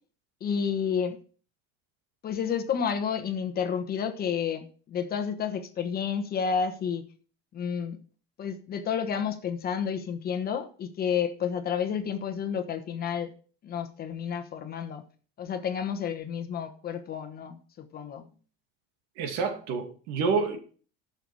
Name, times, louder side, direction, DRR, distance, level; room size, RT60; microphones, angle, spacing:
voice 1, 0.4-1.2 2.2-7.0 7.5-8.0 8.4-13.3 13.6-15.0 15.4-18.3, left 7 dB, 30° left, 1.2 m, -30 dB
voice 2, 19.2-20.6, right 5 dB, 65° right, 2.4 m, -28 dB
11.0 x 7.0 x 4.8 m
cardioid pair, 150°, 29 cm